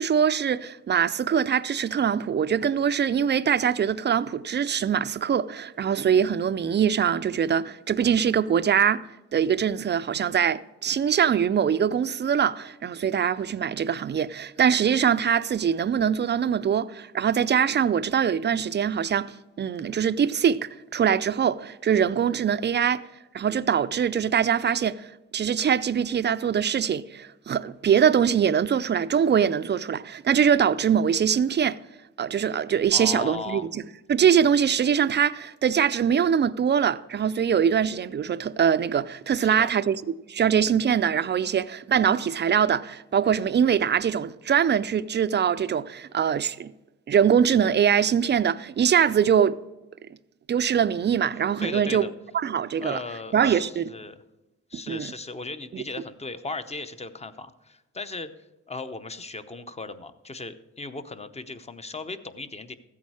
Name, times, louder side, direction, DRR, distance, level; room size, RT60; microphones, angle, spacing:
voice 1, 0.0-9.0 9.3-23.0 23.3-25.1 25.3-31.8 32.2-33.8 34.1-40.0 40.3-46.7 47.1-49.6 50.5-52.1 52.3-53.0 53.3-53.9 54.9-55.1 55.7-55.8, right 8 dB, 35° right, 0.4 m, -23 dB
voice 2, 32.9-33.7 39.4-39.7 51.6-52.1 52.8-54.2 54.7-58.3 58.7-62.7, left 3 dB, 20° left, 0.7 m, -37 dB
14.5 x 8.5 x 4.8 m
cardioid pair, 105°, 31 cm